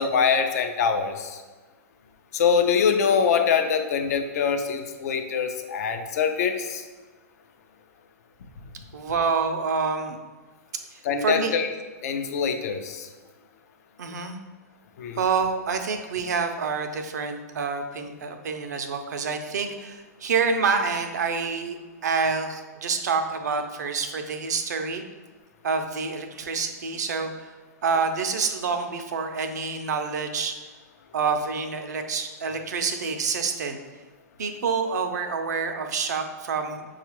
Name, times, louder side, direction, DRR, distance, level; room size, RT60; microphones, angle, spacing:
voice 1, 0.0-1.4 2.3-6.8 11.0-11.7 12.0-13.1 15.0-15.2, left 6 dB, 65° left, 6 dB, 0.5 m, -24 dB
voice 2, 8.9-10.2 10.9-11.5 14.0-14.4 15.2-25.0 25.6-27.6 27.8-30.5 31.1-33.8 34.4-36.9, right 5 dB, 80° right, 6 dB, 0.5 m, -27 dB
5.8 x 2.4 x 3.0 m, 1.3 s
hypercardioid pair, 120°, 9 cm